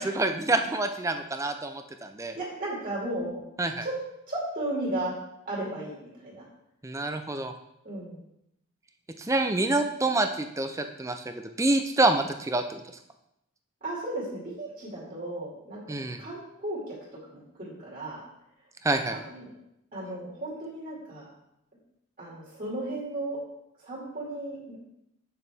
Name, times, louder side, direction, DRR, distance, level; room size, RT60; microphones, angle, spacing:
voice 1, 0.0-2.4 3.6-3.9 6.8-7.5 9.2-12.8 15.9-16.2 18.8-19.2, right 2 dB, 15° right, 7 dB, 0.4 m, -27 dB
voice 2, 2.4-3.4 3.8-3.9 4.3-5.1 5.4-6.4 7.8-8.2 13.8-15.8 16.2-16.9 17.3-18.2 19.1-19.5 19.9-21.3 22.2-23.4 23.8-24.8, right 1 dB, 40° right, -5 dB, 2.3 m, -35 dB
7.8 x 6.8 x 3.5 m, 0.81 s
head